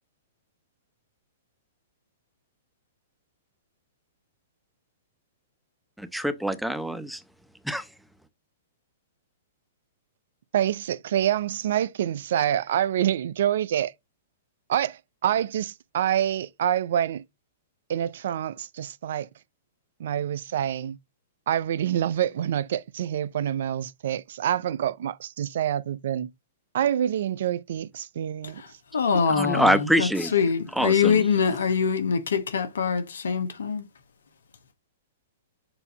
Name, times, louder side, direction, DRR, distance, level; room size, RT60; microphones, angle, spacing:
voice 1, 6.0-7.2 7.6-7.8 29.4-30.3 30.7-31.2, equal, ahead, 0.7 m, -25 dB
voice 2, 10.5-13.9 14.7-17.2 17.9-19.3 20.0-21.0 21.5-26.3 26.7-28.6 29.1-29.2, right 10 dB, 65° right, 0.4 m, -26 dB
voice 3, 28.9-33.8, left 6 dB, 75° left, 1.1 m, -24 dB
7.0 x 2.7 x 5.1 m
hypercardioid pair, 120°, 0 cm